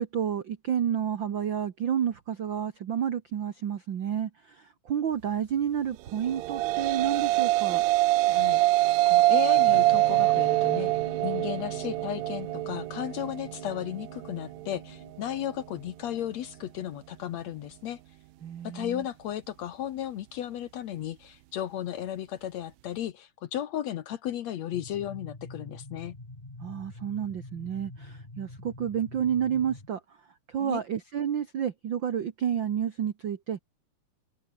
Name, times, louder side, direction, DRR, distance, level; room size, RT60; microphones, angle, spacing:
voice 1, 0.0-7.8 18.4-19.1 26.6-30.0 30.5-33.6, right 9 dB, 65° right, 1.1 m, -30 dB
sound 1, 6.2-14.7, right 18 dB, 90° right, 1.5 m, -25 dB
voice 2, 8.3-10.9 11.2-18.0 18.6-26.2 30.6-30.8, left 11 dB, 65° left, 1.9 m, -35 dB
sound 2, 9.5-16.8, left 2 dB, 30° left, 6.6 m, -47 dB
sound 3, 24.7-29.9, left 2 dB, 15° left, 2.6 m, -45 dB
open air
omnidirectional pair, 3.9 m